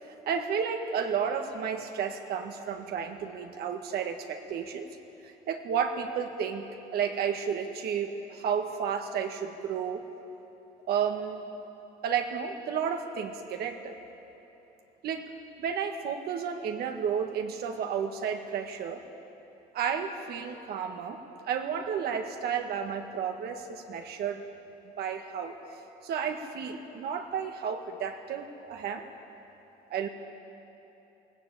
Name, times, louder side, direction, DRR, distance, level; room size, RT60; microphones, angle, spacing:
voice 1, 0.3-4.9 5.2-10.1 10.9-11.5 12.0-13.9 15.0-19.0 19.7-24.4 25.0-25.6 26.0-29.1 29.9-30.1, right 7 dB, 70° right, 5 dB, 2.0 m, -32 dB
22.0 x 18.0 x 8.6 m, 3.0 s
cardioid pair, 110°, 17 cm